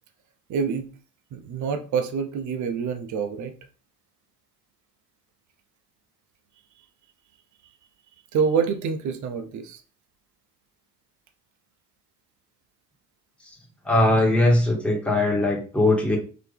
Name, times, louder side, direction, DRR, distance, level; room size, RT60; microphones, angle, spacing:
voice 1, 0.5-0.9 1.3-3.5 8.3-9.8, right 6 dB, 75° right, 7 dB, 0.6 m, -26 dB
voice 2, 13.8-16.2, left 2 dB, 5° left, -2 dB, 1.5 m, -20 dB
4.0 x 2.8 x 3.3 m, 0.37 s
cardioid pair, 90°, 30 cm